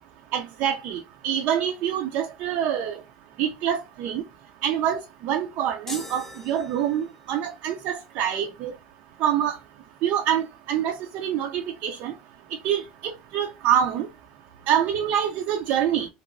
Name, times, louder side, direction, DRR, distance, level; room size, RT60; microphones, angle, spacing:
voice 1, 0.3-3.0 3.4-4.2 4.6-8.7 9.2-9.6 10.0-12.1 12.6-14.1 14.7-16.1, right 9 dB, 60° right, 0.5 m, -26 dB
sound 1, 5.9-7.4, left 1 dB, 10° left, 0.7 m, -40 dB
2.9 x 2.9 x 2.5 m
supercardioid pair, 125°, 3 cm